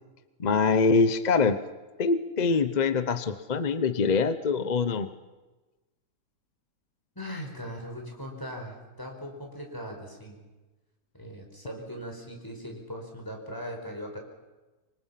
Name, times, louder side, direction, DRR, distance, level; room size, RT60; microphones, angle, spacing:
voice 1, 0.4-1.6 2.0-5.1, left 4 dB, 40° left, 12 dB, 0.7 m, -24 dB
voice 2, 7.1-10.4 11.1-14.2, equal, 10° left, 1 dB, 5.0 m, -39 dB
27.0 x 24.5 x 5.8 m, 1.2 s
omnidirectional pair, 1.8 m